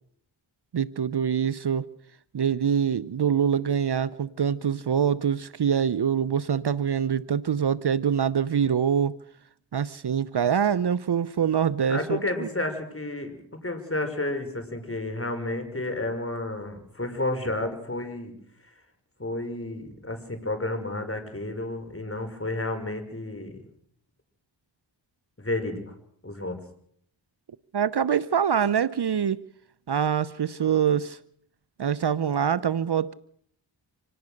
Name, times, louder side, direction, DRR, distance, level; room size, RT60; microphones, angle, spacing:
voice 1, 0.7-1.9 2.3-9.2 9.7-12.5 27.7-29.4 29.9-31.2 31.8-33.1, right 8 dB, 55° right, 0.8 m, -24 dB
voice 2, 11.9-18.3 19.2-23.6 25.4-25.9 26.2-26.6, left 2 dB, 25° left, 5.6 m, -31 dB
26.0 x 18.0 x 6.6 m
cardioid pair, 45°, 48 cm